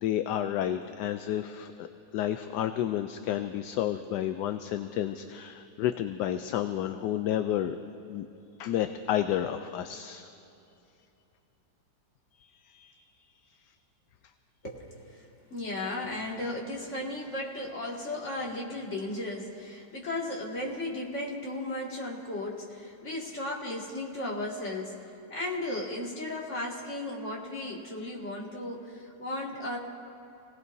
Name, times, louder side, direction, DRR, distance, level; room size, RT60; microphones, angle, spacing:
voice 1, 0.0-1.9 2.1-7.8 8.1-8.3 8.6-10.3 12.4-12.9, left 11 dB, 75° left, 9 dB, 1.1 m, -31 dB
voice 2, 14.6-29.8, left 1 dB, 40° left, -4 dB, 2.5 m, -35 dB
28.5 x 18.0 x 2.7 m, 2.8 s
omnidirectional pair, 2.0 m